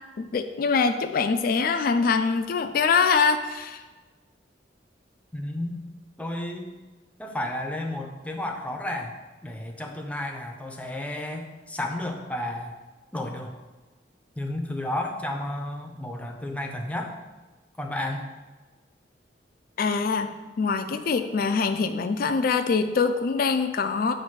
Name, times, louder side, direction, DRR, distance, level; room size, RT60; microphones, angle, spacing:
voice 1, 0.2-3.8 19.8-20.3 20.6-24.1, left 5 dB, 55° left, 7 dB, 0.4 m, -24 dB
voice 2, 5.3-5.8 6.2-6.7 7.2-9.1 9.4-12.8 13.1-13.6 14.4-17.1 17.8-18.3, left 1 dB, 10° left, 2 dB, 0.6 m, -32 dB
7.9 x 2.6 x 5.9 m, 1.3 s
head